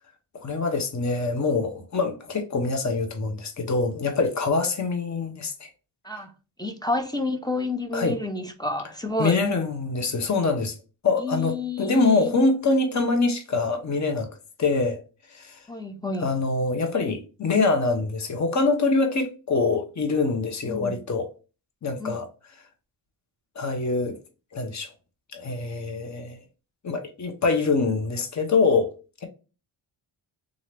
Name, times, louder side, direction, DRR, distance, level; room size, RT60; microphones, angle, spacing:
voice 1, 0.3-5.7 7.9-8.1 9.2-10.7 11.0-14.3 14.6-15.0 15.3-15.6 16.2-21.3 21.8-22.3 23.6-24.2 24.5-24.9 25.3-26.4 26.8-28.9, left 3 dB, 35° left, 0.9 m, -24 dB
voice 2, 6.6-9.4 11.2-12.4 15.7-16.3 20.6-20.9 22.0-22.2, left 2 dB, 10° left, 0.5 m, -30 dB
3.8 x 2.8 x 3.2 m
wide cardioid pair, 120°, 47 cm